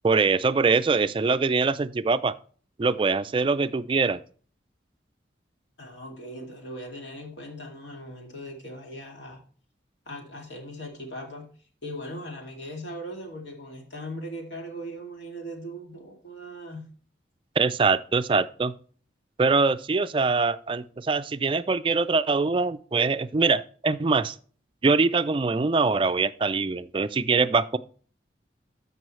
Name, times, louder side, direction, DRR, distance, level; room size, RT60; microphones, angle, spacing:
voice 1, 0.0-2.3 2.8-4.2 17.6-18.7 19.4-24.3 24.8-27.8, right 4 dB, 30° right, 0.3 m, -23 dB
voice 2, 5.8-9.4 10.1-11.5 11.8-16.9, equal, 80° left, 2.4 m, -39 dB
14.0 x 5.5 x 3.1 m
head